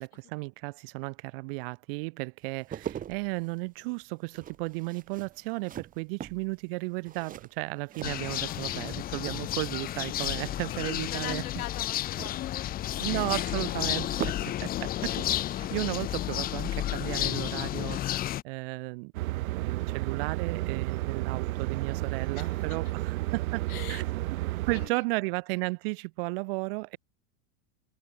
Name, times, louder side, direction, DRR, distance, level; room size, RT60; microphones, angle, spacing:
voice 1, 0.0-11.4 13.0-14.3 14.6-24.1 24.6-27.0, right 28 dB, 40° right, 0.7 m, -34 dB
sound 1, 2.4-8.9 9.2-9.8 11.1-14.6 14.9-15.1, right 10 dB, 20° right, 2.1 m, -42 dB
sound 2, 8.0-18.4, left 13 dB, 20° left, 1.0 m, -32 dB
voice 2, 8.1-9.3 10.7-13.0 13.6-13.8 14.2-15.0 22.3-22.8 23.7-24.0 24.7-25.0, left 15 dB, 80° left, 6.3 m, -44 dB
sound 3, 19.1-24.9, right 18 dB, 70° right, 1.9 m, -32 dB
supercardioid pair, 170°, 43 cm